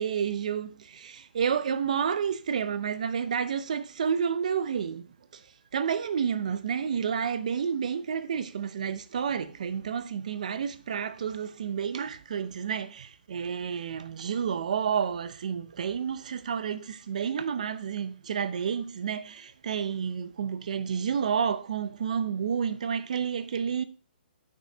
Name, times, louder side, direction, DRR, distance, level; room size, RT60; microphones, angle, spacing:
voice 1, 0.0-5.1 5.7-23.8, right 7 dB, 45° right, 0.7 m, -30 dB
8.4 x 6.3 x 5.4 m
hypercardioid pair, 175°, 6 cm